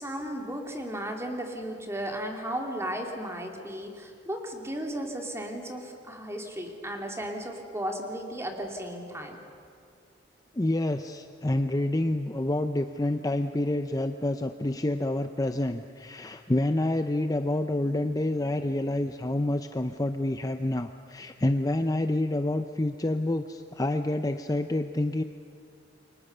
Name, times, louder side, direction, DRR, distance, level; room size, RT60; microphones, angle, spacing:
voice 1, 0.0-9.4, right 1 dB, 15° right, 2 dB, 2.7 m, -35 dB
voice 2, 10.5-25.2, left 1 dB, 20° left, 8 dB, 0.6 m, -28 dB
28.5 x 23.5 x 6.8 m, 2.3 s
head